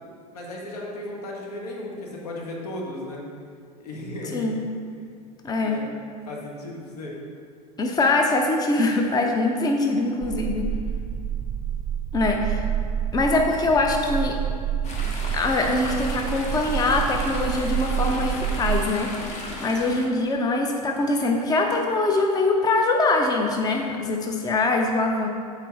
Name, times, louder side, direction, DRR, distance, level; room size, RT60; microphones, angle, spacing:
voice 1, 0.3-3.2 3.8-4.6 5.6-5.8 6.3-7.2, left 1 dB, 70° left, -2 dB, 1.6 m, -35 dB
voice 2, 5.4-5.8 7.8-10.7 12.1-12.6 13.1-14.4 15.3-19.1 19.6-25.3, left 2 dB, 20° left, 2 dB, 0.7 m, -23 dB
sound 1, 10.2-18.8, right 9 dB, 20° right, 0.5 m, -28 dB
Chatter / Stream, 14.8-20.1, left 2 dB, 35° left, 1.5 m, -35 dB
7.4 x 4.4 x 5.3 m, 2.3 s
hypercardioid pair, 85°, 20 cm